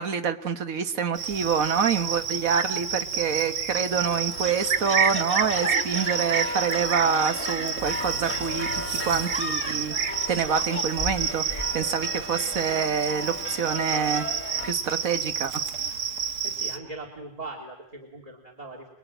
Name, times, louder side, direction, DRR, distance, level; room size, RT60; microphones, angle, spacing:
voice 1, 0.0-14.3 14.6-15.6, right 6 dB, 85° right, 10 dB, 1.7 m, -27 dB
Cricket, 1.2-16.8, right 6 dB, 70° right, 1.6 m, -29 dB
sound 1, 4.1-14.7, left 1 dB, 10° left, 1.4 m, -35 dB
sound 2, 7.8-12.9, left 2 dB, 45° right, 3.7 m, -41 dB
voice 2, 16.4-18.9, right 2 dB, 25° right, -1 dB, 3.3 m, -40 dB
28.0 x 21.0 x 9.1 m, 0.82 s
omnidirectional pair, 1.4 m